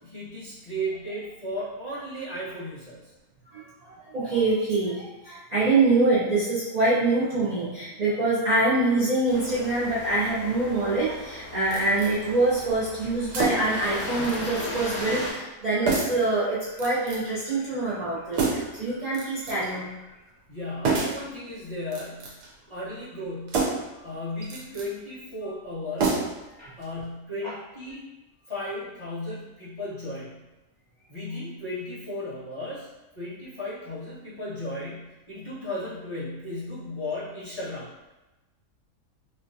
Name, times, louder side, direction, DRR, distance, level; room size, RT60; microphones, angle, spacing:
voice 1, 0.0-3.1 20.5-22.3 22.7-23.7 24.0-26.3 26.8-28.0 28.5-30.4 31.1-32.9 33.1-37.9, left 1 dB, 20° left, -12 dB, 1.1 m, -35 dB
voice 2, 3.5-19.9 23.9-24.1 26.6-26.7 27.4-27.5, right 2 dB, 55° right, -10 dB, 0.4 m, -25 dB
sound 1, 9.3-15.3, left 1 dB, 65° left, 1.7 m, -37 dB
sound 2, 11.7-12.1 13.3-13.8 14.2-14.7 15.0-15.1 15.9-16.3 16.8-17.3 18.3-18.8 19.1-19.7 20.8-21.3 21.8-22.5 23.5-23.9 24.4-24.9 26.0-26.5 26.8-26.9, right 4 dB, 85° right, 1.3 m, -28 dB
4.2 x 2.2 x 2.6 m, 1.1 s
omnidirectional pair, 1.7 m